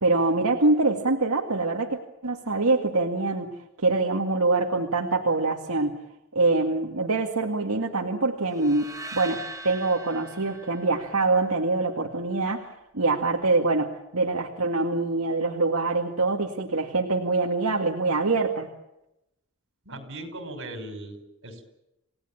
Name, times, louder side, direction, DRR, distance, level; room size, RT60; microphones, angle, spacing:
voice 1, 0.0-3.5 3.8-6.0 6.3-18.7, right 3 dB, 85° right, 0 dB, 2.1 m, -24 dB
sound 1, 8.5-11.7, right 2 dB, 15° right, 3.6 m, -41 dB
voice 2, 19.9-21.6, right 1 dB, 65° right, 7 dB, 5.9 m, -38 dB
29.0 x 18.0 x 8.9 m, 0.90 s
head